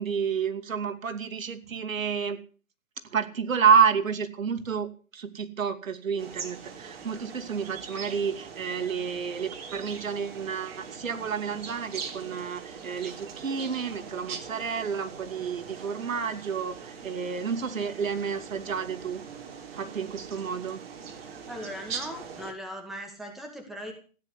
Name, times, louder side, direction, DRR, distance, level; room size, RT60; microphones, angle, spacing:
voice 1, 0.0-2.4 3.1-19.2 19.7-20.8, right 6 dB, 70° right, 6 dB, 2.7 m, -29 dB
sound 1, 6.2-22.5, right 6 dB, 45° right, 3.7 m, -42 dB
voice 2, 21.5-23.9, equal, ahead, 2 dB, 2.2 m, -39 dB
16.0 x 9.9 x 8.4 m, 0.40 s
hypercardioid pair, 155°, 42 cm